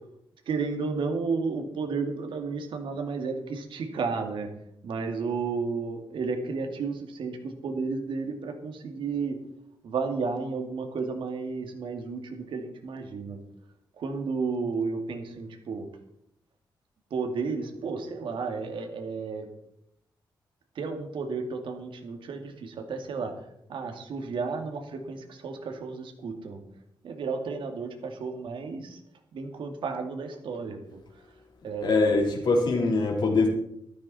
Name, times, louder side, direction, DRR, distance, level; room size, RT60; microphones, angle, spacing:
voice 1, 0.5-4.5 4.8-9.4 9.8-13.4 14.0-15.9 17.1-19.5 20.8-23.3 23.7-26.6 27.0-29.0 29.3-30.8 31.6-32.2, right 4 dB, 80° right, 5 dB, 2.4 m, -32 dB
voice 2, 31.8-33.5, left 3 dB, 60° left, 1 dB, 3.9 m, -23 dB
13.5 x 13.5 x 4.3 m, 0.75 s
wide cardioid pair, 130°, 8 cm